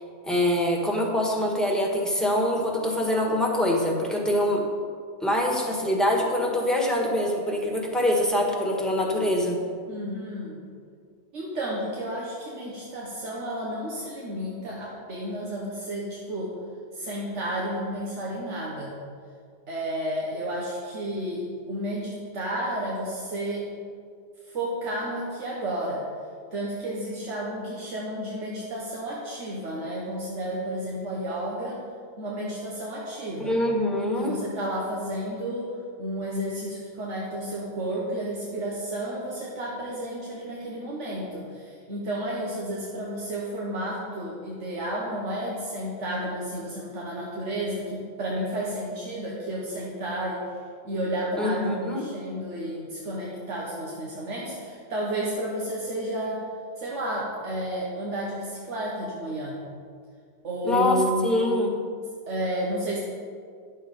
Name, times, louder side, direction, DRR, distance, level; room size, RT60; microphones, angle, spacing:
voice 1, 0.2-4.6 5.2-9.6 33.4-34.3 51.4-52.0 60.6-61.7, left 1 dB, ahead, -1 dB, 1.4 m, -24 dB
voice 2, 9.9-10.6 11.3-16.5 16.9-19.0 19.7-23.7 24.4-26.0 26.5-31.8 32.2-33.6 34.2-35.7 36.0-50.4 50.8-56.4 56.8-59.6 60.4-61.4 62.3-63.0, right 1 dB, 90° right, -4 dB, 1.6 m, -31 dB
10.5 x 7.4 x 5.2 m, 2.2 s
omnidirectional pair, 1.2 m